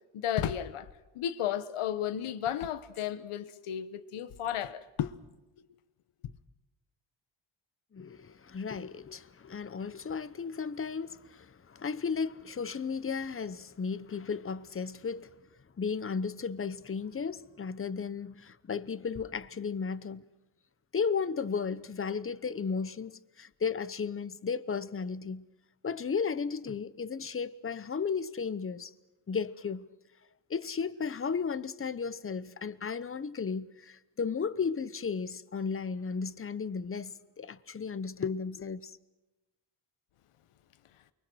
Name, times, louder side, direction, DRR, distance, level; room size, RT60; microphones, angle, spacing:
voice 1, 0.1-0.9 1.1-5.1, left 10 dB, 90° left, 1.3 m, -33 dB
voice 2, 7.9-15.3 15.8-20.2 20.9-25.5 25.8-28.9 29.3-29.9 30.5-39.0, left 5 dB, 25° left, 0.8 m, -34 dB
29.0 x 23.0 x 6.3 m
cardioid pair, 125°, 49 cm